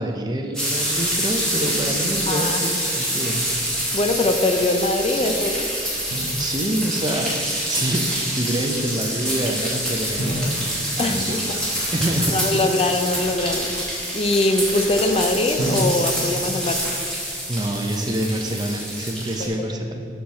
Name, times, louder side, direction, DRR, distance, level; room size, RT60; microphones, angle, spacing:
voice 1, 0.0-3.5 6.4-7.4 7.7-10.7 11.0-11.6 11.9-12.6 17.5-20.1, right 1 dB, 25° right, 3 dB, 0.6 m, -26 dB
sound 1, 0.5-19.5, equal, 5° left, 1.7 m, -26 dB
voice 2, 2.3-2.6 3.9-5.7 11.0-11.4 12.3-16.8 19.4-19.8, left 2 dB, 35° left, 5 dB, 0.4 m, -22 dB
Drum, 6.1-7.2 10.2-12.0 15.6-17.6, equal, 75° left, 1.7 m, -30 dB
6.3 x 5.9 x 4.2 m, 2.6 s
head